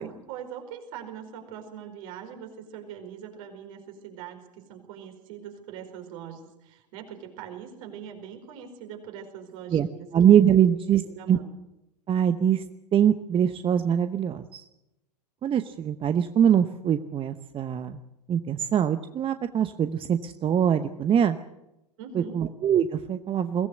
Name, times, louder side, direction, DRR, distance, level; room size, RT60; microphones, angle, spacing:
voice 1, 0.0-10.1 10.6-11.4 22.0-22.4, right 8 dB, 55° right, 5 dB, 4.9 m, -42 dB
voice 2, 10.1-11.0 11.3-11.4 12.1-12.6 12.9-14.6 15.4-18.0 18.3-21.4 22.1-23.7, right 9 dB, 25° right, 10 dB, 0.9 m, -23 dB
22.0 x 17.5 x 7.9 m, 0.91 s
figure-of-eight pair, 95°, 21 cm